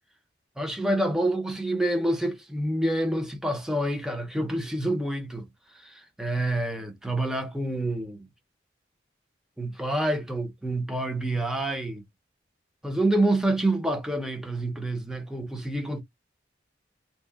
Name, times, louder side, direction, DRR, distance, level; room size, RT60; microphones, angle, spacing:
voice 1, 0.6-5.5 5.7-8.3 9.6-12.0 12.8-16.0, right 1 dB, 5° right, 0.5 m, -27 dB
2.8 x 2.0 x 2.3 m
head